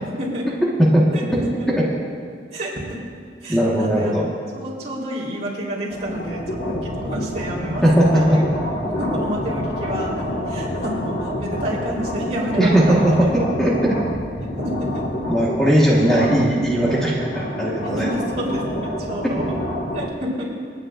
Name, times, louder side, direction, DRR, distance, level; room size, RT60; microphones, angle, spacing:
voice 1, 1.1-1.7 2.5-3.0 3.4-4.2 4.5-7.9 8.1-8.4 8.8-13.4 14.4-15.0 17.8-19.5 19.9-20.5, equal, 40° right, -5 dB, 3.8 m, -29 dB
voice 2, 3.5-4.2 7.8-8.4 12.6-14.0 15.3-18.1, right 1 dB, 5° left, -6 dB, 1.5 m, -18 dB
sound 1, 5.9-20.1, left 1 dB, 75° left, 1.8 m, -28 dB
29.0 x 9.8 x 2.6 m, 2.1 s
head